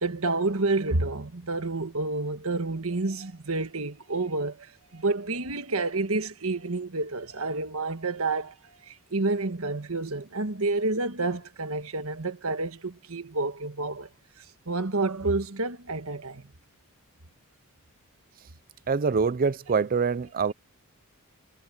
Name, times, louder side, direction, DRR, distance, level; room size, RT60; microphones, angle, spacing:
voice 1, 0.0-4.7 4.9-8.5 8.9-14.1 14.7-16.4, right 3 dB, 65° right, 1.5 m, -29 dB
voice 2, 18.9-20.5, right 5 dB, 40° right, 0.5 m, -25 dB
head